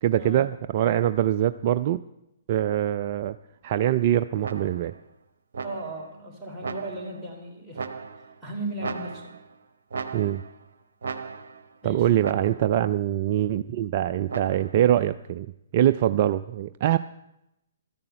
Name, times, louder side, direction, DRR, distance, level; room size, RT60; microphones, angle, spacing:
voice 1, 0.0-2.0 2.5-3.4 3.6-4.9 10.1-10.4 11.8-17.0, right 12 dB, 40° right, 12 dB, 0.4 m, -23 dB
sound 1, 4.4-5.0 5.5-6.1 6.6-7.3 7.8-8.4 8.8-9.6 9.9-10.6 11.0-11.7 12.2-12.8 14.3-14.9, right 5 dB, 55° right, 1.0 m, -37 dB
voice 2, 5.6-7.8 8.4-9.3 11.8-12.1, right 1 dB, 5° right, -5 dB, 3.6 m, -36 dB
13.0 x 10.5 x 6.7 m, 0.85 s
figure-of-eight pair, 125°, 0 cm